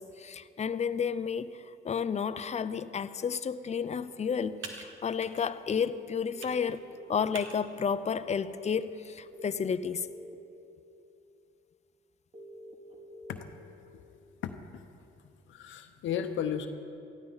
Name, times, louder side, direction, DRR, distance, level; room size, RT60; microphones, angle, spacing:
voice 1, 0.0-1.5 1.8-6.8 7.1-10.1, left 6 dB, 35° left, 13 dB, 0.6 m, -31 dB
Computer keyboard, 3.2-10.0, right 4 dB, 75° right, 1.5 m, -51 dB
sound 1, 4.3-4.4 6.3-7.6 9.3-10.3 12.3-13.3, equal, 30° right, 2.3 m, -47 dB
voice 2, 14.4-14.8 15.5-16.7, left 9 dB, 75° left, 7 dB, 0.8 m, -35 dB
17.5 x 14.0 x 4.0 m, 2.6 s
cardioid pair, 90°, 20 cm